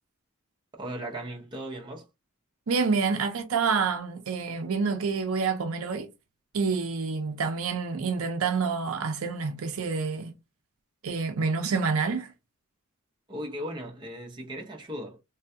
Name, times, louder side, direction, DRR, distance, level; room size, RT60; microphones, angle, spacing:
voice 1, 0.8-2.1 13.3-15.2, equal, 20° right, 0.7 m, -37 dB
voice 2, 2.7-6.1 6.5-10.3 11.0-12.3, right 5 dB, 70° right, 0.5 m, -28 dB
3.2 x 2.3 x 2.6 m
head